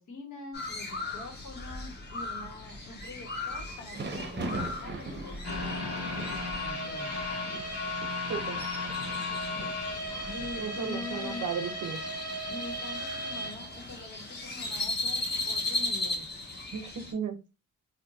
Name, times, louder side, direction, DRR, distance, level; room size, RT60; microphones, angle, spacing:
voice 1, 0.0-7.2 10.2-11.4 12.5-16.3, left 2 dB, 80° left, 3 dB, 1.1 m, -44 dB
Crow, 0.5-17.1, left 2 dB, 35° left, 1.0 m, -38 dB
Thunder / Rain, 3.2-16.3, right 2 dB, 35° right, 0.6 m, -44 dB
sound 1, 5.4-14.4 14.8-14.9 15.4-15.5, left 2 dB, 55° left, 1.4 m, -35 dB
voice 2, 10.6-12.0 16.7-17.4, right 7 dB, 85° right, 7 dB, 0.7 m, -34 dB
2.6 x 2.1 x 3.7 m, 0.29 s
cardioid pair, 90°, 30 cm